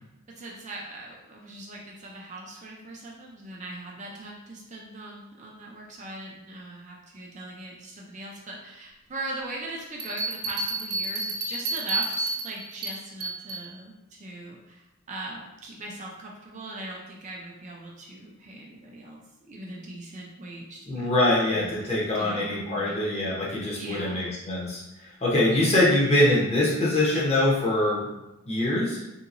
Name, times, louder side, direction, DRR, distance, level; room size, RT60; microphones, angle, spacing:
voice 1, 0.4-21.1 21.5-23.0 23.7-24.3 25.5-25.7, right 2 dB, 35° right, -2 dB, 0.4 m, -40 dB
Bell, 10.0-13.7, right 3 dB, 80° right, 0.6 m, -30 dB
voice 2, 20.9-28.1 28.5-29.0, left 1 dB, 30° left, -6 dB, 0.8 m, -24 dB
3.8 x 2.8 x 2.5 m, 0.96 s
head